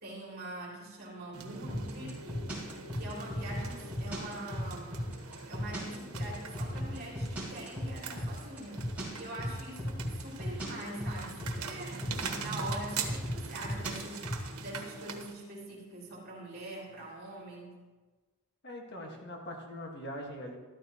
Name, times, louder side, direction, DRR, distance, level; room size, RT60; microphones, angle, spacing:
voice 1, 0.0-2.4 2.9-5.2 5.5-12.0 12.3-14.2 14.6-17.8, right 1 dB, 45° right, -3 dB, 3.4 m, -43 dB
sound 1, 1.3-15.3, right 5 dB, 90° right, 1.3 m, -43 dB
sound 2, 1.7-14.5, equal, 5° right, 3.7 m, -35 dB
voice 2, 18.6-20.6, equal, 50° left, 0 dB, 1.6 m, -42 dB
13.5 x 13.0 x 3.0 m, 1.3 s
head